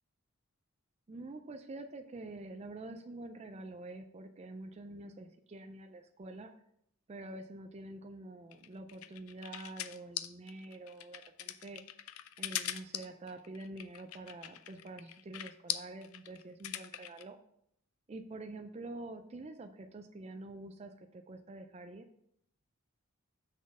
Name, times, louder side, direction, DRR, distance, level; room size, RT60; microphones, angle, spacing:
voice 1, 1.1-6.5 7.1-11.8 12.4-17.4 18.1-22.0, right 2 dB, 30° right, 6 dB, 0.3 m, -47 dB
sound 1, 8.5-17.2, left 12 dB, 70° left, 0.4 m, -41 dB
6.2 x 4.0 x 6.0 m, 0.73 s
head